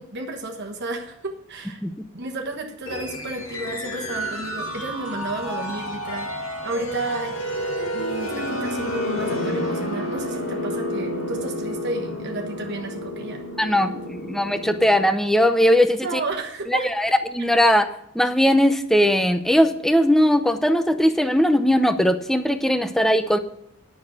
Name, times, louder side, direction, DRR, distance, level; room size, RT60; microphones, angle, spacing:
voice 1, 0.0-1.8 2.1-7.4 7.9-13.4 13.8-13.9 16.0-16.9, right 2 dB, 55° right, 2 dB, 1.2 m, -32 dB
sound 1, 2.8-15.1, equal, 75° left, 2.1 m, -30 dB
voice 2, 13.6-16.2 16.7-17.9 18.1-23.4, equal, ahead, 9 dB, 0.6 m, -19 dB
10.0 x 6.3 x 8.7 m, 0.74 s
head